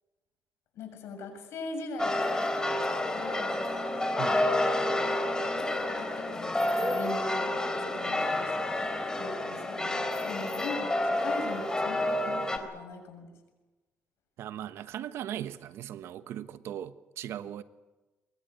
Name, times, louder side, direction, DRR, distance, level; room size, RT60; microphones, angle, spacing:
voice 1, 0.7-2.3 3.1-3.6 6.0-13.3, left 3 dB, 75° left, 5 dB, 6.9 m, -40 dB
sound 1, 2.0-12.6, left 1 dB, 15° left, 3.8 m, -29 dB
voice 2, 14.4-17.6, right 11 dB, 70° right, 12 dB, 1.2 m, -38 dB
23.5 x 22.0 x 8.3 m, 1.2 s
cardioid pair, 95°, 4 cm